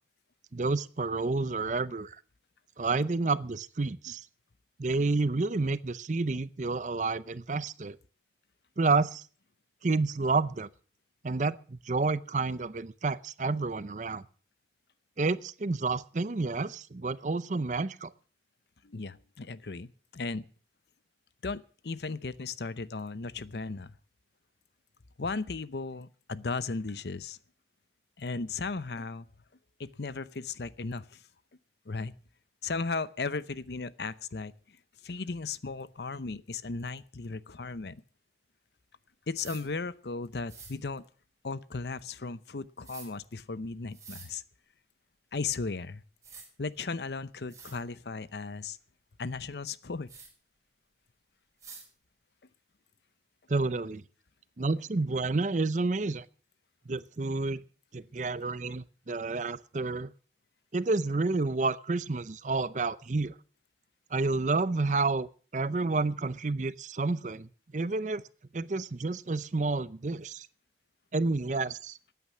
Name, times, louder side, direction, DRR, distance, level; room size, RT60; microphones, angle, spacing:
voice 1, 0.5-2.2 2.8-4.3 4.8-8.0 8.8-9.2 9.8-10.7 11.2-14.2 15.2-18.1 53.5-54.0 54.6-56.3 56.9-57.6 57.9-60.1 60.7-63.3 64.1-65.3 65.5-68.2 68.5-70.5 71.1-72.0, right 3 dB, 45° right, 17 dB, 0.6 m, -29 dB
voice 2, 18.8-20.5 21.4-23.9 25.2-27.4 28.2-29.3 29.8-31.2 31.9-32.1 32.6-34.8 35.0-38.0 39.3-41.0 41.4-44.4 45.3-46.0 46.6-48.8 49.2-50.1, left 4 dB, 70° left, 16 dB, 0.7 m, -36 dB
sound 1, 39.3-39.6 40.5-40.7 42.8-43.1 43.9-44.3 45.8-45.9 46.2-46.5 47.1-47.2 47.5-47.8 50.1-50.3 51.6-51.9, right 5 dB, 20° right, 5.2 m, -48 dB
14.0 x 9.5 x 7.1 m, 0.41 s
head